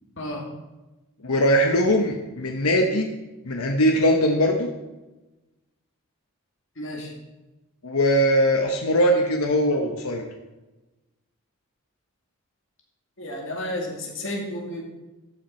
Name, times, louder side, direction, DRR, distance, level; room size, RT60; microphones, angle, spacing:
voice 1, 1.2-3.1 3.4-4.7 7.8-10.2, equal, 80° left, 3 dB, 1.0 m, -21 dB
voice 2, 6.8-7.1 13.2-14.8, left 1 dB, 55° left, 0 dB, 2.1 m, -32 dB
13.0 x 5.9 x 4.3 m, 1.1 s
head